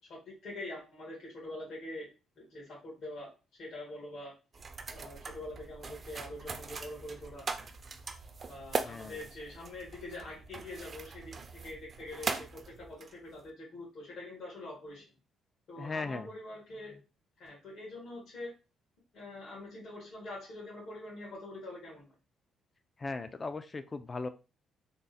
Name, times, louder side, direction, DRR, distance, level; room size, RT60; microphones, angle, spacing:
voice 1, 0.0-2.1 2.4-3.3 3.6-4.3 4.9-7.5 8.4-11.3 11.6-15.0 15.7-17.0 17.4-18.5 19.1-22.0, left 1 dB, 70° left, -5 dB, 1.7 m, -44 dB
sound 1, 4.5-13.5, right 4 dB, 40° right, 0.5 m, -41 dB
voice 2, 8.8-9.2 15.8-16.3 23.0-24.3, left 3 dB, 30° left, 10 dB, 0.4 m, -38 dB
3.7 x 2.1 x 4.1 m, 0.32 s
cardioid pair, 90°, 0 cm